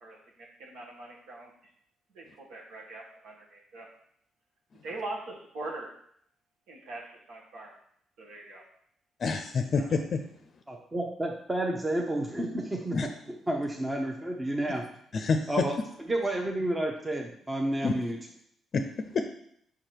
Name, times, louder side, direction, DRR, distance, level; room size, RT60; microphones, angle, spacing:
voice 1, 0.0-1.5 2.1-3.9 4.8-5.9 6.7-7.7 8.2-8.6 9.7-9.9, right 2 dB, 85° right, -3 dB, 1.6 m, -42 dB
voice 2, 9.2-10.2 12.9-13.1 15.1-15.5 17.8-17.9 18.7-18.8 19.1-19.2, left 4 dB, 50° left, 6 dB, 0.5 m, -27 dB
voice 3, 10.7-13.0 13.5-14.8 15.5-18.2, right 1 dB, 20° right, 0 dB, 0.8 m, -30 dB
4.9 x 4.9 x 4.5 m, 0.67 s
cardioid pair, 90°, 0 cm